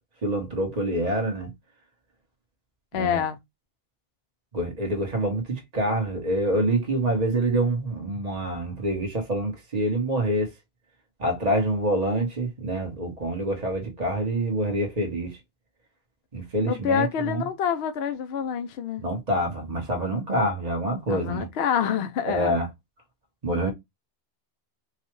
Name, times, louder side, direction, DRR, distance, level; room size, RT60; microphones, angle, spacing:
voice 1, 0.2-1.5 2.9-3.2 4.5-10.5 11.2-15.4 16.3-17.5 19.0-21.5 22.2-22.7 23.4-23.7, right 1 dB, 40° right, 1.4 m, -26 dB
voice 2, 2.9-3.4 16.7-19.0 21.1-22.6, left 8 dB, 70° left, 0.8 m, -27 dB
4.7 x 2.3 x 3.0 m
omnidirectional pair, 1.1 m